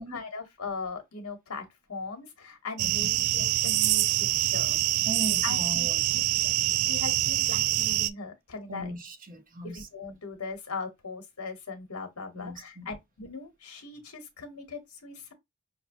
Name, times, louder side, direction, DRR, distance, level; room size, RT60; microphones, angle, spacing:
voice 1, 0.0-4.8 5.4-5.6 6.1-6.5 6.9-8.9 9.6-15.3, left 4 dB, 75° left, 1.1 m, -39 dB
sound 1, 2.8-8.1, right 15 dB, 85° right, 0.3 m, -25 dB
voice 2, 5.1-6.1 8.7-9.9 12.3-12.9, right 1 dB, 40° right, 0.9 m, -38 dB
5.5 x 2.1 x 2.6 m
head